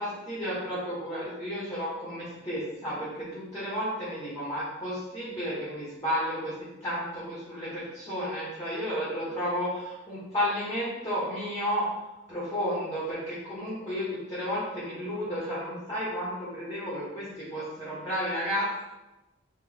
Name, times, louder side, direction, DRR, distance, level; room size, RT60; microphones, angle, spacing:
voice 1, 0.0-6.5 6.8-11.8 12.3-18.8, equal, 15° left, -9 dB, 1.2 m, -32 dB
4.3 x 3.0 x 3.5 m, 0.99 s
head